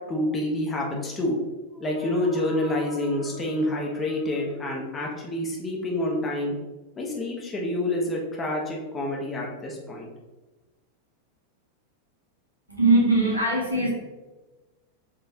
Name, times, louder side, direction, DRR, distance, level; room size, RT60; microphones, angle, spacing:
voice 1, 0.1-1.4 1.8-6.5 7.0-10.1, left 1 dB, 20° left, -1 dB, 1.0 m, -28 dB
sound 1, 1.6-5.4, right 2 dB, 35° right, 1.3 m, -42 dB
voice 2, 12.7-13.9, right 2 dB, 85° right, -3 dB, 1.3 m, -21 dB
6.0 x 3.1 x 2.9 m, 1.1 s
figure-of-eight pair, 90°, 0 cm